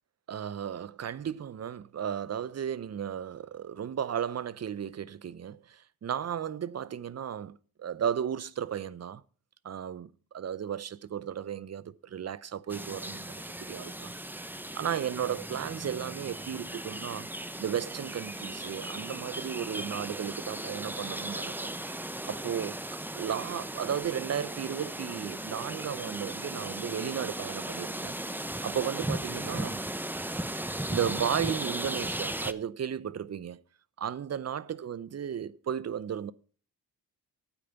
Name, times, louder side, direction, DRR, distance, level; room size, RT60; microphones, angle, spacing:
voice 1, 0.3-9.2 9.6-17.3 17.6-21.7 22.2-22.8 23.1-28.2 28.6-29.8 30.6-33.6 34.0-36.3, right 8 dB, 45° right, 0.6 m, -35 dB
sound 1, 12.7-32.5, right 1 dB, 5° right, 0.7 m, -37 dB
9.1 x 8.9 x 5.7 m
cardioid pair, 75°, 38 cm